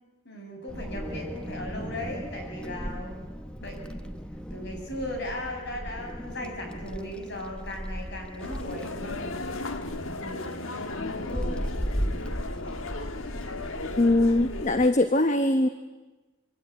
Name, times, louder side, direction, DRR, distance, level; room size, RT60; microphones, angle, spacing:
voice 1, 0.2-3.2 3.6-4.1 4.5-9.5 10.1-11.7, left 1 dB, 55° left, 2 dB, 7.6 m, -37 dB
Wind, 0.7-14.9, equal, 5° left, 1.0 m, -36 dB
sound 1, 8.4-14.9, left 3 dB, 70° left, 1.7 m, -36 dB
voice 2, 14.0-15.7, left 2 dB, 35° left, 8 dB, 1.0 m, -21 dB
26.0 x 24.0 x 9.4 m, 1.2 s
head